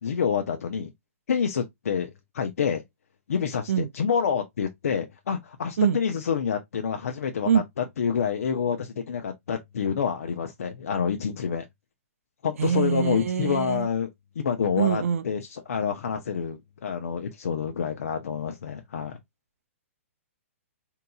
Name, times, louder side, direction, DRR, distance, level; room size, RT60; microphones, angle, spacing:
voice 1, 0.0-0.9 1.3-2.8 3.3-11.6 12.4-14.1 14.4-19.2, left 7 dB, 80° left, 0.6 m, -28 dB
voice 2, 12.6-13.9 14.8-15.2, right 8 dB, 75° right, 0.4 m, -24 dB
3.7 x 2.8 x 2.2 m
hypercardioid pair, 155°, 8 cm